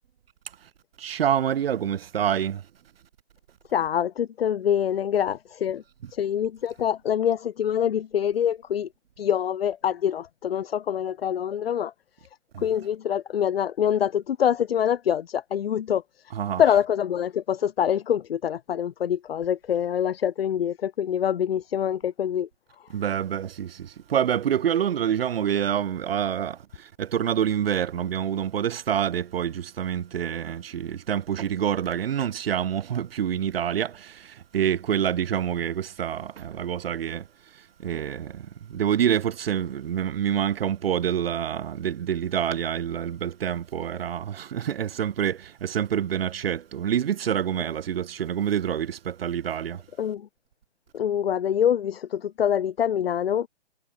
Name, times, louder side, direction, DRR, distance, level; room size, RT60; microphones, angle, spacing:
voice 1, 1.0-2.6 12.5-12.7 16.3-16.6 22.9-37.2 37.5-49.8, right 9 dB, 55° right, 3.2 m, -27 dB
voice 2, 3.7-5.8 6.1-8.9 9.2-11.9 12.6-16.0 16.6-22.5 50.0-50.3 50.9-53.5, left 9 dB, 60° left, 3.0 m, -25 dB
hypercardioid pair, 145°, 34 cm